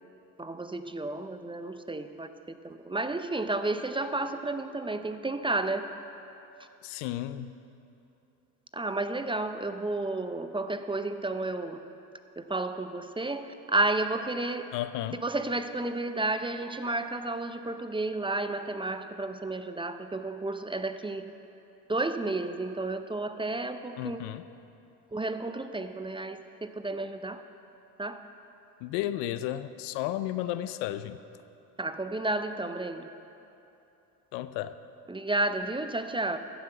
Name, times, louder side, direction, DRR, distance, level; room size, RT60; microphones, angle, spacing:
voice 1, 0.4-5.9 8.7-11.8 12.4-14.7 15.2-21.3 21.9-24.2 25.1-27.4 28.0-28.2 31.8-33.1 35.1-36.4, right 2 dB, 10° right, 9 dB, 0.6 m, -32 dB
voice 2, 6.8-7.5 14.7-15.2 24.0-24.4 28.8-31.2 34.3-34.7, left 13 dB, 75° left, 13 dB, 0.6 m, -33 dB
13.5 x 5.9 x 8.0 m, 2.8 s
supercardioid pair, 70°, 42 cm